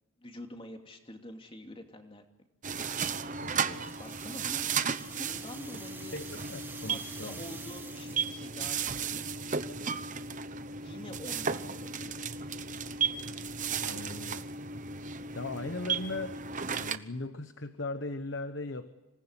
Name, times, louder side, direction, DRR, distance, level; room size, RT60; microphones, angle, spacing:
voice 1, 0.2-2.2 4.0-4.7 5.1-6.2 6.8-9.2 10.8-12.1, left 1 dB, 25° left, 4 dB, 2.7 m, -46 dB
sound 1, 2.6-17.0, right 6 dB, 35° right, 0.9 m, -35 dB
sound 2, 3.2-8.6, right 3 dB, 10° right, 2.1 m, -48 dB
voice 2, 3.4-4.0 6.1-7.4 13.8-14.5 15.3-16.4 16.8-18.9, left 2 dB, 55° left, 9 dB, 1.1 m, -38 dB
26.5 x 19.5 x 9.8 m, 1.0 s
head